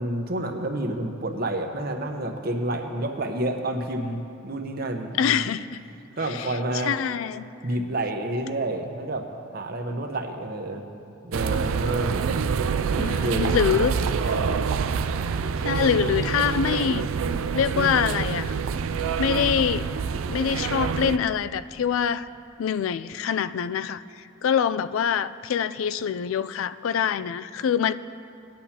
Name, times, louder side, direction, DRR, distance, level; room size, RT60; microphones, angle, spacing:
voice 1, 0.0-5.5 6.2-6.9 7.6-10.8 11.2-12.2 13.0-13.9 14.2-14.6, right 1 dB, 50° right, 4 dB, 1.0 m, -29 dB
voice 2, 5.2-5.8 6.2-7.5 13.0-13.9 15.6-17.1 17.5-18.5 19.2-19.9 20.3-22.3 22.6-24.0 24.4-27.9, left 7 dB, 80° left, 14 dB, 0.3 m, -25 dB
sound 1, 11.3-21.2, right 6 dB, 80° right, 0.4 m, -26 dB
19.5 x 10.5 x 2.9 m, 2.4 s
head